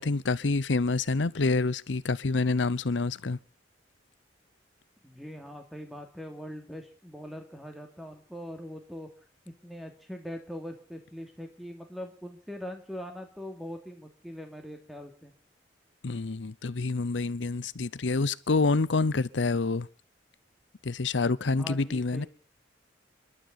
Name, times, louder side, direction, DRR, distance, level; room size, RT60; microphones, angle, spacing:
voice 1, 0.0-3.4 16.0-19.9 20.8-22.3, left 3 dB, 80° left, 0.7 m, -27 dB
voice 2, 5.0-9.1 9.4-15.3 21.6-22.3, equal, ahead, 2.9 m, -42 dB
28.0 x 12.5 x 4.1 m
head